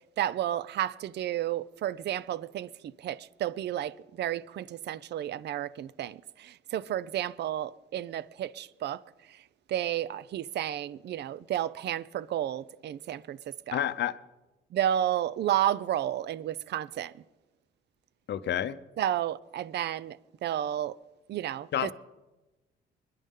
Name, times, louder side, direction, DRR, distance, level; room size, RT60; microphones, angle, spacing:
voice 1, 0.2-2.7 3.0-9.0 9.7-13.4 13.7-13.8 14.7-17.1 19.0-20.2 20.4-20.9 21.3-21.9, right 11 dB, 60° right, 0.5 m, -31 dB
voice 2, 13.7-14.2 18.3-18.8 21.7-21.9, left 11 dB, 60° left, 0.7 m, -29 dB
23.5 x 11.0 x 3.7 m
cardioid pair, 90°, 20 cm